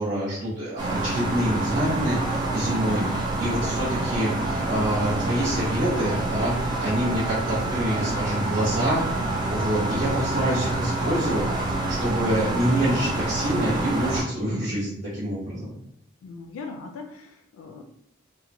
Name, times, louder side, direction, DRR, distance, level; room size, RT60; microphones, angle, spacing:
voice 1, 0.0-4.3 4.6-9.0 9.5-11.4 11.9-15.7, right 1 dB, 50° right, -11 dB, 0.8 m, -26 dB
sound 1, 0.8-14.2, right 2 dB, 20° right, 0.5 m, -27 dB
voice 2, 16.2-17.8, left 4 dB, 85° left, 3 dB, 0.3 m, -39 dB
2.9 x 2.0 x 2.6 m, 0.75 s
head